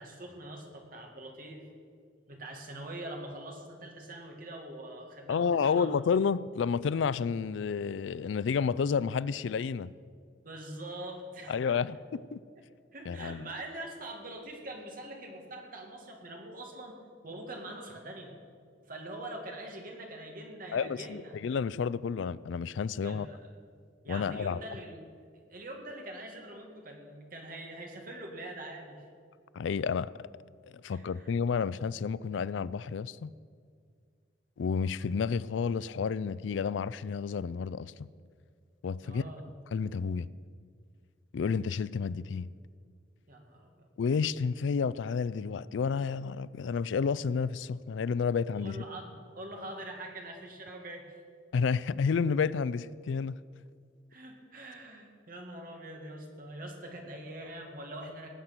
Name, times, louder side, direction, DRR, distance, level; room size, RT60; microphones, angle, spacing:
voice 1, 0.0-1.7 2.3-5.9 10.4-11.8 12.9-17.0 17.2-18.3 18.9-21.3 23.0-23.5 24.0-25.0 25.5-29.0 30.9-31.3 39.0-39.4 43.3-43.9 48.6-51.2 54.1-58.3, right 1 dB, 50° right, 1 dB, 2.1 m, -44 dB
voice 2, 5.3-9.9 11.5-12.4 13.1-13.5 20.7-23.3 24.1-24.6 29.5-30.1 30.8-33.3 34.6-37.9 38.8-39.2 39.7-40.3 41.3-42.5 44.0-48.8 51.5-53.3, left 6 dB, 90° left, 19 dB, 0.4 m, -30 dB
19.0 x 8.0 x 6.0 m, 2.1 s
head